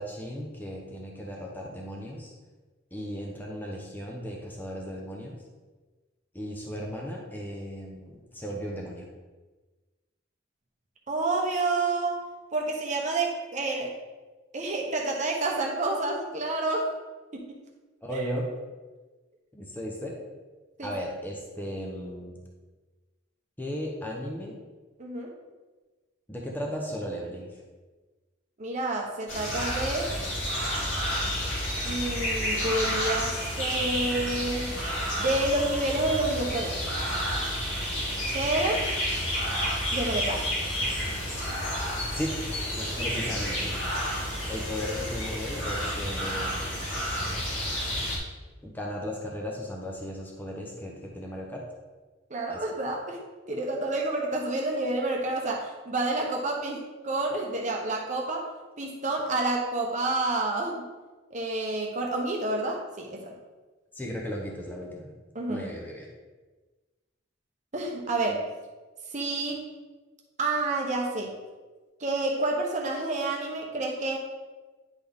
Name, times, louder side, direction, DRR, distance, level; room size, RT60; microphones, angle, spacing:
voice 1, 0.0-2.3 2.9-5.4 6.3-9.1 18.0-18.5 19.5-20.2 20.8-22.4 23.6-24.6 26.3-27.6 42.1-42.4 42.7-43.7 44.4-46.7 48.6-51.6 52.5-52.7 63.9-65.1 65.5-66.1, equal, 10° left, -2 dB, 0.8 m, -36 dB
voice 2, 11.1-12.2 12.5-13.9 14.5-16.9 17.5-17.6 18.1-18.2 20.8-20.9 25.0-25.3 28.6-30.1 31.8-34.7 35.2-36.8 38.3-38.8 39.9-40.4 52.3-53.2 53.5-58.4 58.8-60.8 61.3-63.3 65.3-65.7 67.7-68.5 69.1-69.6 70.4-71.3 72.0-74.2, right 2 dB, 40° right, 0 dB, 0.9 m, -29 dB
sound 1, 29.3-48.2, equal, 80° left, 2.3 m, -30 dB
9.8 x 4.2 x 3.6 m, 1.3 s
head